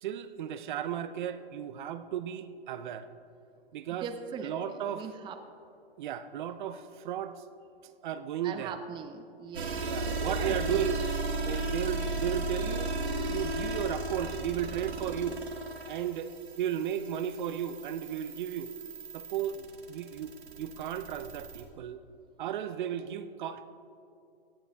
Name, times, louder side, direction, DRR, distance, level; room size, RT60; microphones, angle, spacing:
voice 1, 0.0-3.1 3.7-4.1 4.4-5.1 6.0-7.4 8.0-8.8 9.8-10.9 11.4-12.9 13.3-15.4 15.9-16.3 16.6-18.7 19.1-22.0 22.4-23.6, right 10 dB, 50° right, 11 dB, 0.7 m, -34 dB
voice 2, 4.0-5.4 8.4-10.9, right 6 dB, 15° right, 8 dB, 0.7 m, -41 dB
sound 1, 9.5-21.6, right 2 dB, 85° right, 2.3 m, -35 dB
17.5 x 12.0 x 3.5 m, 2.6 s
hypercardioid pair, 125°, 31 cm